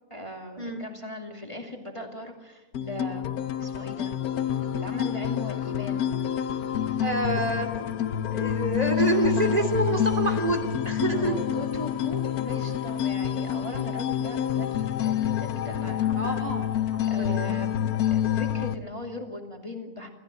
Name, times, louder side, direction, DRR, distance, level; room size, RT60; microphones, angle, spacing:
voice 1, 0.1-4.2 4.5-6.1 8.9-9.8 11.1-16.2 17.0-17.8 18.1-20.1, left 1 dB, 20° left, 2 dB, 2.6 m, -38 dB
sound 1, 2.7-18.7, left 10 dB, 75° left, 1.3 m, -28 dB
voice 2, 7.0-7.7 8.3-11.3 12.4-12.7 16.1-16.7 16.9-17.9, right 2 dB, 25° right, 4 dB, 2.8 m, -28 dB
27.5 x 15.5 x 7.7 m, 1.2 s
omnidirectional pair, 1.6 m